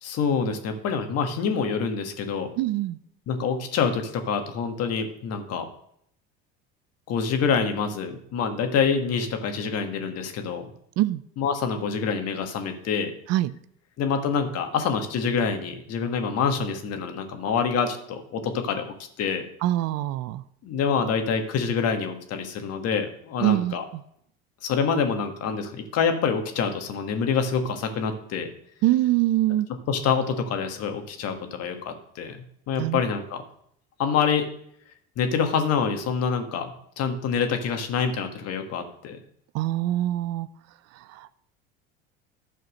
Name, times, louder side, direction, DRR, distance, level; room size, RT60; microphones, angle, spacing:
voice 1, 0.0-2.5 3.3-5.7 7.1-10.7 11.4-13.1 14.0-19.4 20.6-23.8 24.6-28.5 29.9-33.4 34.0-34.5 35.2-39.2, left 6 dB, 55° left, 6 dB, 1.6 m, -26 dB
voice 2, 2.6-3.0 11.0-11.2 13.3-13.5 19.6-20.4 23.4-23.7 28.8-29.7 32.8-33.0 39.5-40.5 41.0-41.4, right 15 dB, 55° right, 16 dB, 0.6 m, -24 dB
11.5 x 4.4 x 6.4 m, 0.70 s
supercardioid pair, 90°, 31 cm